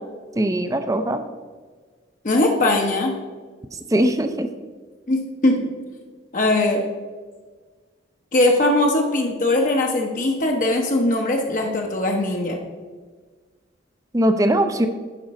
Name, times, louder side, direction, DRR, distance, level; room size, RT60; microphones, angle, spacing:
voice 1, 0.4-1.2 3.9-4.5 14.1-14.9, right 1 dB, 15° right, 8 dB, 0.5 m, -20 dB
voice 2, 2.2-3.1 5.1-5.6 6.3-6.8 8.3-12.6, left 2 dB, 45° left, 1 dB, 0.8 m, -20 dB
11.0 x 5.1 x 4.2 m, 1.5 s
head